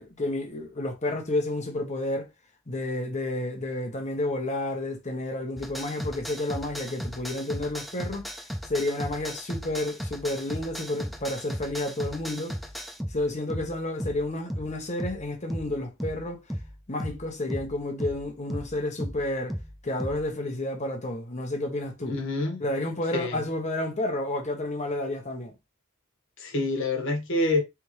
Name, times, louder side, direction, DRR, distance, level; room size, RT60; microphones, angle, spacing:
voice 1, 0.0-2.3 2.7-8.3 8.7-12.6 13.1-16.4 16.9-19.6 19.8-22.1 22.6-25.5, left 1 dB, 35° left, 1.2 m, -30 dB
sound 1, 5.6-20.3, equal, ahead, 0.5 m, -36 dB
voice 2, 22.1-22.6 23.1-23.4 26.4-27.6, left 2 dB, 60° left, 1.5 m, -27 dB
4.3 x 3.6 x 3.1 m
head